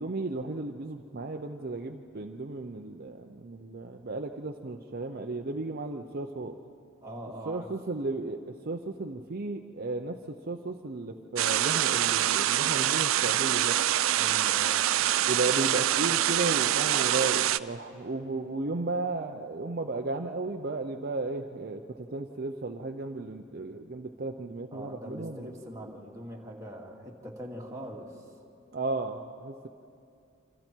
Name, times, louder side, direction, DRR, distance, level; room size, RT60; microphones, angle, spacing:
voice 1, 0.0-6.6 7.5-13.8 15.2-25.4 28.7-29.7, right 3 dB, 50° right, 4 dB, 0.7 m, -34 dB
voice 2, 7.0-7.7 14.1-14.8 24.7-28.1, equal, 15° right, -2 dB, 2.4 m, -42 dB
sound 1, 11.4-17.6, right 12 dB, 90° right, 0.5 m, -25 dB
28.0 x 26.0 x 4.6 m, 2.5 s
head